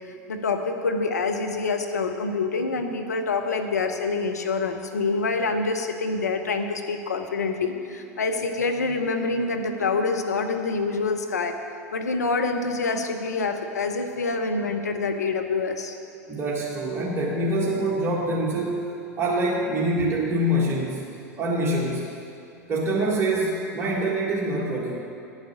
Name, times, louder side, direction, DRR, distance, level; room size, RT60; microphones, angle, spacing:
voice 1, 0.3-11.5 11.9-15.9, left 3 dB, 85° left, 5 dB, 0.8 m, -26 dB
voice 2, 16.3-18.9 19.2-21.1 21.4-22.0 22.7-25.0, right 1 dB, 25° right, -5 dB, 1.6 m, -25 dB
10.5 x 6.6 x 7.2 m, 2.5 s
hypercardioid pair, 85°, 9 cm